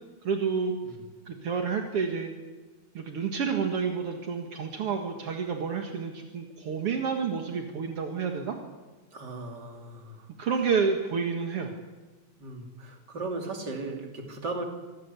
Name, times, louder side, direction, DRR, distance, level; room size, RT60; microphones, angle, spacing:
voice 1, 0.2-0.7 1.2-2.3 2.9-8.6 10.4-11.7, right 5 dB, 55° right, 3 dB, 1.7 m, -29 dB
voice 2, 9.1-10.3 12.4-14.6, right 3 dB, 25° right, 3 dB, 3.0 m, -37 dB
25.5 x 18.5 x 8.4 m, 1.3 s
omnidirectional pair, 5.1 m